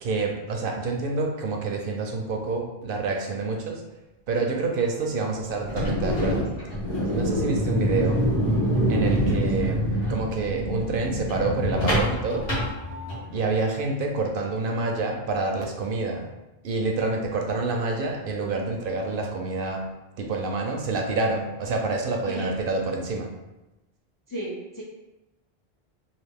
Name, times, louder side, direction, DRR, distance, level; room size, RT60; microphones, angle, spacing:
voice 1, 0.0-3.8 4.3-6.5 7.1-8.3 8.9-12.5 13.3-16.3 16.6-19.9 20.2-23.3, right 3 dB, 65° right, 2 dB, 0.7 m, -27 dB
sound 1, 5.6-13.4, equal, 65° left, 1.5 m, -25 dB
voice 2, 24.3-24.8, right 1 dB, 35° left, -4 dB, 0.3 m, -33 dB
3.2 x 2.5 x 3.4 m, 1.0 s
omnidirectional pair, 1.1 m